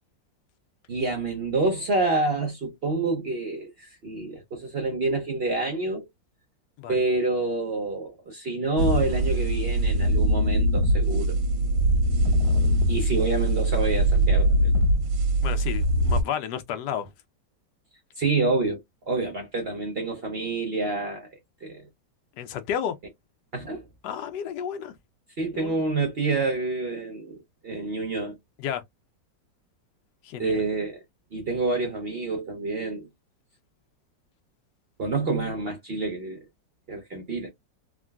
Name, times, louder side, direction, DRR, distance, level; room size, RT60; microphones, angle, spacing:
voice 1, 0.9-6.1 6.9-11.4 12.9-14.7 18.2-18.8 19.1-21.3 21.6-21.8 23.5-23.9 25.4-27.4 27.6-28.4 30.4-31.0 31.3-33.1 35.0-36.4 36.9-37.5, right 3 dB, 70° right, 0.5 m, -28 dB
sound 1, 8.8-16.2, right 1 dB, 85° right, 1.3 m, -22 dB
voice 2, 11.9-12.3 15.4-17.1 22.4-23.0 24.0-24.9 25.5-25.8 28.6-28.8 30.2-30.6, left 9 dB, 70° left, 1.1 m, -32 dB
3.6 x 2.2 x 2.2 m
omnidirectional pair, 2.0 m